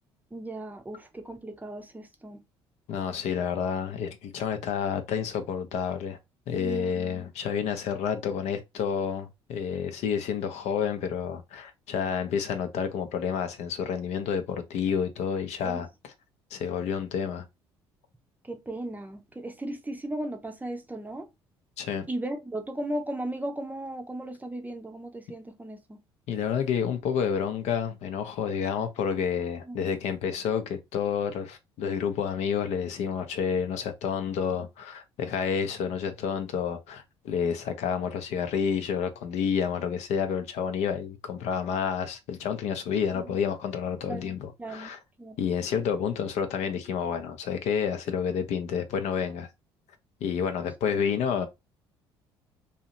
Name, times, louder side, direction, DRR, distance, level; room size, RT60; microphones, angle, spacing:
voice 1, 0.3-2.4 6.5-7.3 15.6-15.8 18.4-21.3 22.1-26.0 29.6-29.9 43.1-43.4 44.1-44.9 45.2-45.5 50.9-51.0, right 1 dB, 10° right, 0.6 m, -36 dB
voice 2, 2.9-6.2 6.5-16.1 16.5-17.4 21.8-22.1 26.3-45.0 45.4-49.5 50.2-51.5, left 7 dB, 55° left, 0.6 m, -29 dB
2.8 x 2.3 x 2.9 m
hypercardioid pair, 55°, 14 cm